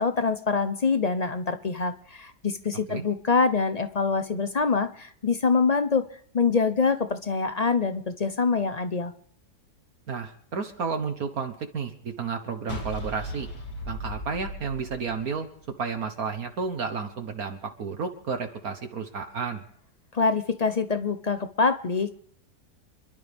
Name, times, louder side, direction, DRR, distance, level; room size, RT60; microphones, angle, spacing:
voice 1, 0.0-6.1 6.3-9.1 20.1-22.1, left 4 dB, 45° left, 10 dB, 0.5 m, -25 dB
voice 2, 10.1-13.5 13.9-15.5 15.8-19.6, right 5 dB, 60° right, 5 dB, 1.6 m, -32 dB
sound 1, 12.7-15.9, equal, 80° left, 3.3 m, -37 dB
27.5 x 12.0 x 3.5 m, 0.64 s
omnidirectional pair, 1.8 m